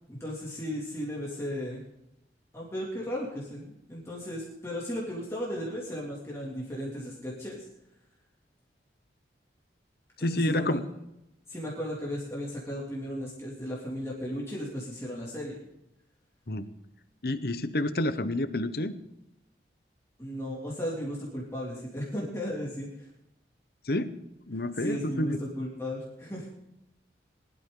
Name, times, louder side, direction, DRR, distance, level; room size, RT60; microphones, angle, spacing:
voice 1, 0.1-1.8 2.5-7.7 10.2-10.8 11.5-15.6 20.2-23.1 24.8-26.5, equal, 15° left, -4 dB, 2.7 m, -35 dB
voice 2, 10.2-10.8 16.5-16.7 17.2-18.9 23.8-24.1 24.5-25.4, left 1 dB, 55° left, 11 dB, 1.0 m, -29 dB
21.0 x 12.5 x 3.9 m, 0.85 s
head